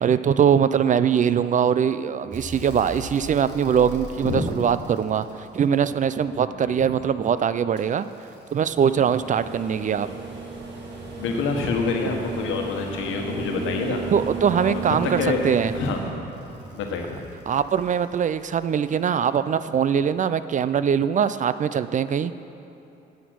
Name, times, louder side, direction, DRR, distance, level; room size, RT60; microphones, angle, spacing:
voice 1, 0.0-8.1 8.5-10.2 14.1-15.7 17.5-22.3, right 8 dB, 40° right, 14 dB, 0.4 m, -22 dB
sound 1, 2.3-6.5 7.8-19.0 20.5-20.6, right 4 dB, 65° right, 2.0 m, -37 dB
voice 2, 6.5-6.9 11.2-14.0 14.6-15.4 15.7-16.0 16.7-17.2, left 4 dB, 85° left, 2 dB, 1.3 m, -27 dB
10.0 x 7.2 x 6.2 m, 2.9 s
cardioid pair, 90°, 20 cm